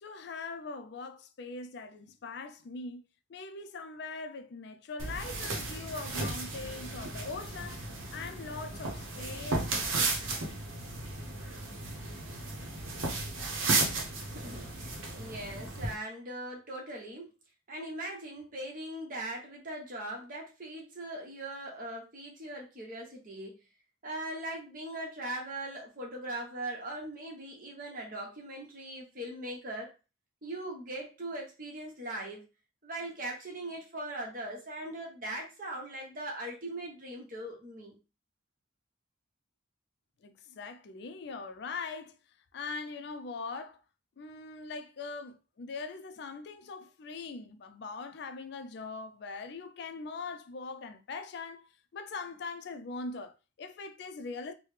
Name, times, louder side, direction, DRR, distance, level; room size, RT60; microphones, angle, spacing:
voice 1, 0.0-3.0 3.3-10.2 12.0-12.1 40.2-42.2 42.5-43.8 44.2-54.5, left 4 dB, 55° left, 0.4 m, -41 dB
sound 1, 5.0-15.9, right 3 dB, 85° right, 0.7 m, -34 dB
voice 2, 14.2-17.3 17.7-23.6 24.0-29.9 30.4-32.4 32.8-38.0, right 1 dB, 45° right, 1.0 m, -40 dB
3.1 x 2.1 x 3.2 m
head